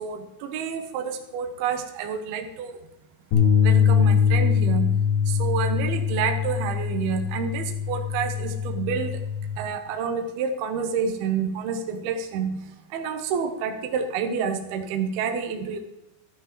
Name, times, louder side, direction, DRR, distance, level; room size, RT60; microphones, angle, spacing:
voice 1, 0.0-2.8 3.6-4.9 5.3-9.2 9.6-12.6 12.9-15.8, right 6 dB, 75° right, 5 dB, 2.5 m, -28 dB
sound 1, 3.3-9.6, left 7 dB, 80° left, 4.7 m, -22 dB
13.0 x 12.0 x 3.0 m, 0.93 s
omnidirectional pair, 5.0 m